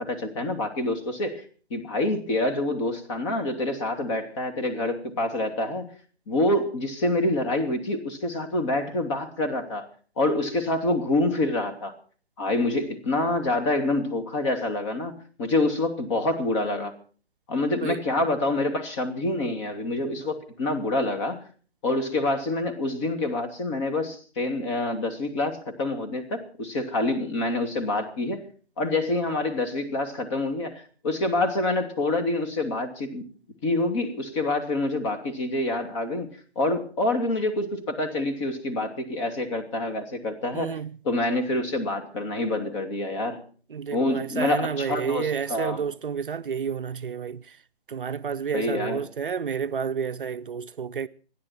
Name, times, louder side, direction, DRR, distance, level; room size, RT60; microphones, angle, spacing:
voice 1, 0.0-1.4 1.7-5.9 6.3-9.9 10.2-11.9 12.4-16.9 17.5-21.4 21.8-28.4 28.8-33.3 33.6-36.3 36.6-40.8 41.0-43.4 43.9-45.8 48.5-49.0, left 2 dB, 30° left, 2.6 m, -27 dB
voice 2, 40.5-40.9 43.7-47.6 47.9-51.1, right 6 dB, 55° right, 0.7 m, -30 dB
28.5 x 10.5 x 4.4 m
figure-of-eight pair, 135°, 31 cm